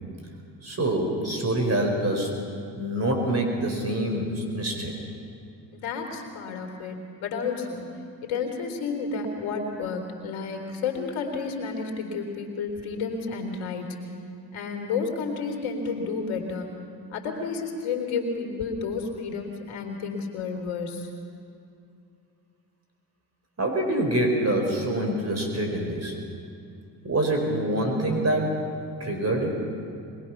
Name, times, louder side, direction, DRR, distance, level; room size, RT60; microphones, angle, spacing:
voice 1, 0.6-2.4 2.8-4.9 23.6-26.2 27.0-28.6 29.0-29.6, right 1 dB, 30° right, 2 dB, 4.5 m, -25 dB
voice 2, 5.7-7.9 8.2-14.0 14.5-16.7 17.1-21.1, left 4 dB, 70° left, 3 dB, 3.5 m, -31 dB
22.0 x 21.0 x 6.0 m, 2.5 s
hypercardioid pair, 60°, 48 cm